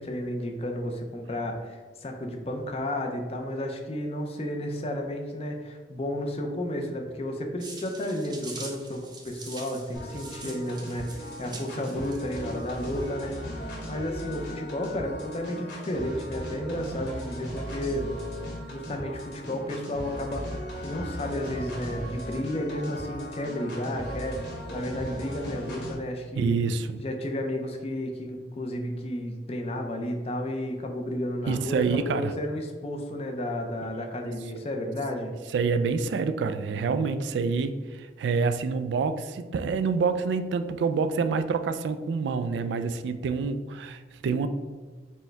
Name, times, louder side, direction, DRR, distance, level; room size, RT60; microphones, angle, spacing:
voice 1, 0.0-18.1 18.7-26.6 27.0-35.3, left 1 dB, 35° left, 3 dB, 0.5 m, -32 dB
sound 1, 7.6-13.1, right 3 dB, 25° right, 0.7 m, -45 dB
sound 2, 9.9-25.9, equal, 90° left, 1.4 m, -37 dB
voice 2, 26.3-27.0 31.5-32.3 35.5-44.5, right 5 dB, 75° right, 10 dB, 0.3 m, -27 dB
4.4 x 2.2 x 4.4 m, 1.4 s
head